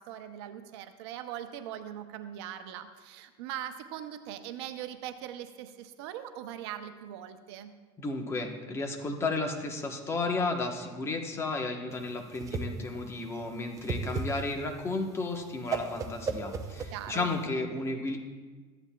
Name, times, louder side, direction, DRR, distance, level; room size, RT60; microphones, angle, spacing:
voice 1, 0.0-7.7 16.9-17.3, right 11 dB, 80° right, 9 dB, 0.7 m, -41 dB
voice 2, 8.0-18.2, left 3 dB, 20° left, 3 dB, 1.1 m, -33 dB
Whoosh swoosh swish, 11.9-17.4, right 4 dB, 25° right, 0.7 m, -36 dB
14.0 x 9.6 x 2.3 m, 1.4 s
cardioid pair, 145°, 14 cm